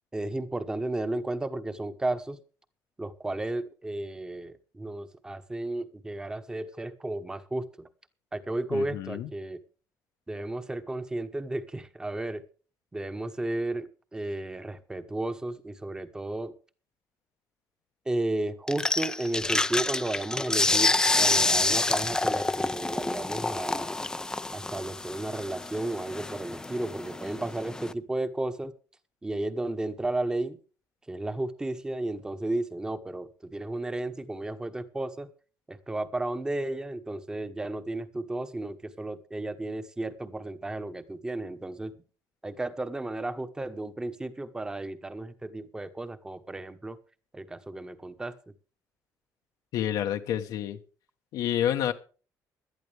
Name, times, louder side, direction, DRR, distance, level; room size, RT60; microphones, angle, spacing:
voice 1, 0.1-2.4 3.0-7.9 8.3-9.6 10.3-12.4 12.9-16.6 18.0-23.9 24.5-28.7 29.2-30.6 31.1-35.3 35.7-42.0 42.4-47.0 47.3-48.3, right 2 dB, 10° right, 11 dB, 1.1 m, -33 dB
voice 2, 8.7-9.3 49.7-50.8 51.3-51.9, left 10 dB, 80° left, 5 dB, 1.1 m, -29 dB
sound 1, 18.7-27.9, left 2 dB, 10° left, 0.5 m, -28 dB
17.5 x 12.0 x 3.4 m, 0.37 s
cardioid pair, 155°, 7 cm